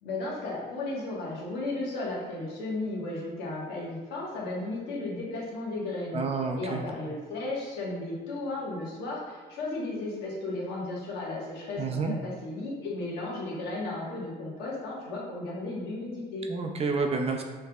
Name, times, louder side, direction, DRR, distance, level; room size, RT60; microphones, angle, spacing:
voice 1, 0.0-6.2 6.6-16.5, left 2 dB, 80° left, -5 dB, 1.4 m, -34 dB
voice 2, 6.1-6.8 11.8-12.1 16.5-17.4, right 4 dB, 35° right, 3 dB, 0.5 m, -29 dB
5.5 x 3.2 x 2.3 m, 1.5 s
cardioid pair, 110°, 17 cm